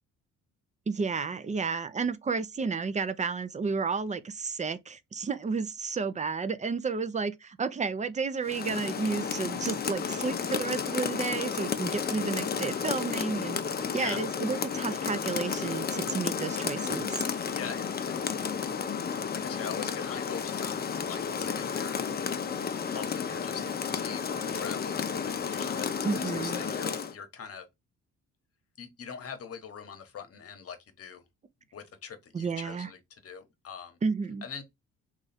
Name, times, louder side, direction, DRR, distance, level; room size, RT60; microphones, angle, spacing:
voice 1, 0.9-13.6 13.9-17.2 26.0-26.6 32.3-32.9 34.0-34.5, right 5 dB, 25° right, 0.4 m, -32 dB
Rain, 8.4-27.1, left 6 dB, 30° left, 0.5 m, -32 dB
voice 2, 17.5-18.2 19.3-22.0 22.9-25.0 25.2-27.7 28.8-31.2 31.7-34.0 34.4-34.6, left 6 dB, 50° left, 1.0 m, -43 dB
3.1 x 2.4 x 4.1 m
cardioid pair, 90°, 30 cm